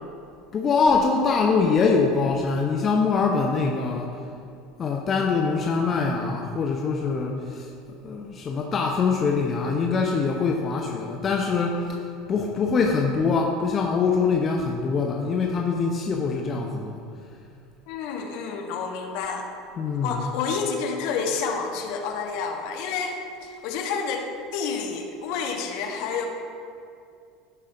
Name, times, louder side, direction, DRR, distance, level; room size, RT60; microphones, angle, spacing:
voice 1, 0.5-4.2 4.8-7.7 8.0-12.0 12.3-17.0 19.8-20.2, left 4 dB, 35° left, 1 dB, 0.7 m, -23 dB
voice 2, 17.9-19.5 20.0-26.3, left 5 dB, 55° left, 2 dB, 1.1 m, -29 dB
16.5 x 5.6 x 2.7 m, 2.4 s
figure-of-eight pair, 70°, 0 cm